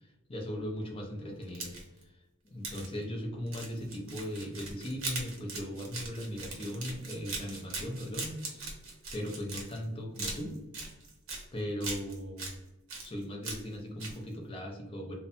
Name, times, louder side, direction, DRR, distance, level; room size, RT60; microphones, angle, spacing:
voice 1, 0.0-1.7 2.0-2.1 2.4-8.7 9.1-10.5 11.5-12.5 13.0-15.2, equal, 25° left, 1 dB, 0.5 m, -38 dB
sound 1, 1.4-2.0 2.6-2.9 3.5-9.8 10.2-11.4 11.8-12.5 12.9-13.7 14.0-14.2, right 3 dB, 70° right, 0.7 m, -40 dB
2.7 x 2.1 x 2.6 m, 0.98 s
head